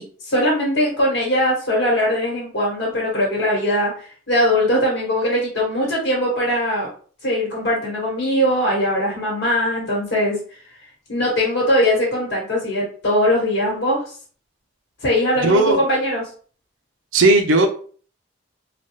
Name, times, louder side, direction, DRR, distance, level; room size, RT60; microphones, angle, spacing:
voice 1, 0.0-6.9 7.2-10.4 11.1-14.0 15.0-16.3, equal, 70° left, -4 dB, 1.2 m, -20 dB
voice 2, 15.4-15.8 17.1-17.7, right 2 dB, 90° right, 3 dB, 0.5 m, -15 dB
3.2 x 2.2 x 2.8 m, 0.44 s
head